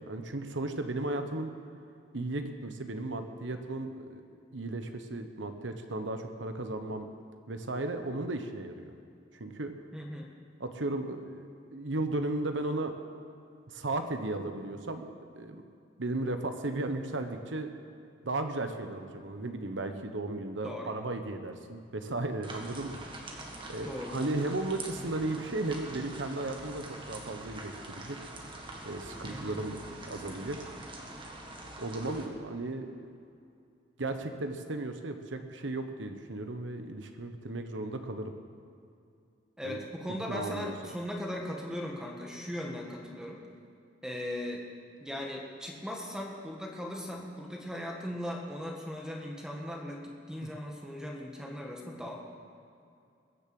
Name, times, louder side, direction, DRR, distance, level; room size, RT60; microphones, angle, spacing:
voice 1, 0.0-1.5 2.1-4.2 4.5-7.1 7.5-8.8 9.3-9.7 10.6-12.9 13.7-15.6 16.0-17.7 18.2-23.0 23.7-28.2 28.8-30.6 31.8-33.2 34.0-38.3 39.6-39.8 40.3-40.7 50.4-50.5, right 2 dB, 85° right, 7 dB, 1.2 m, -35 dB
voice 2, 9.9-10.3 20.6-21.0 23.8-24.2 29.3-29.5 39.6-43.4 44.0-44.6 45.0-52.2, left 1 dB, 5° right, 0 dB, 1.7 m, -38 dB
sound 1, 22.4-32.3, right 2 dB, 30° right, 1.7 m, -44 dB
21.0 x 7.1 x 7.8 m, 2.5 s
head